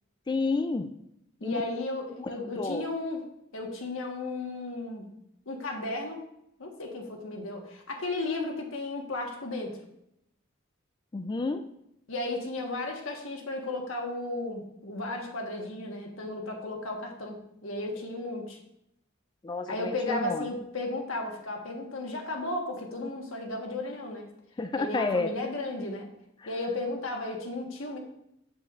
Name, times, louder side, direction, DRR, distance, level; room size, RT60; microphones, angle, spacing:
voice 1, 0.3-0.9 1.4-1.6 2.2-2.3 2.6-2.9 11.1-11.6 19.4-20.5 24.6-25.3, left 3 dB, 20° left, 8 dB, 0.3 m, -30 dB
voice 2, 1.4-3.2 3.5-5.1 5.5-6.2 6.6-9.8 12.1-18.6 19.7-24.3 24.8-26.1 26.5-28.0, left 2 dB, 90° left, 2 dB, 1.3 m, -34 dB
7.6 x 7.6 x 2.4 m, 0.78 s
head